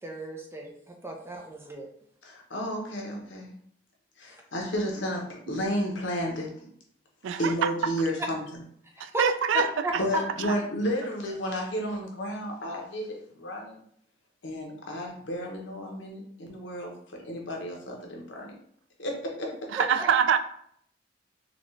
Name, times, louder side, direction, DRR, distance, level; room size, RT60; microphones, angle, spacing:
voice 1, 0.0-1.9 4.3-4.4 8.8-9.3 9.5-10.2 20.0-20.1, equal, 15° right, 1 dB, 0.5 m, -34 dB
voice 2, 2.3-3.5 4.2-6.5 7.4-8.4 10.0-13.8 14.4-16.9 17.2-18.5 19.0-19.5, equal, 80° left, 0 dB, 1.0 m, -32 dB
voice 3, 7.2-7.7 9.0-9.7 19.7-20.4, right 7 dB, 90° right, 10 dB, 0.3 m, -24 dB
4.0 x 2.3 x 3.1 m, 0.66 s
head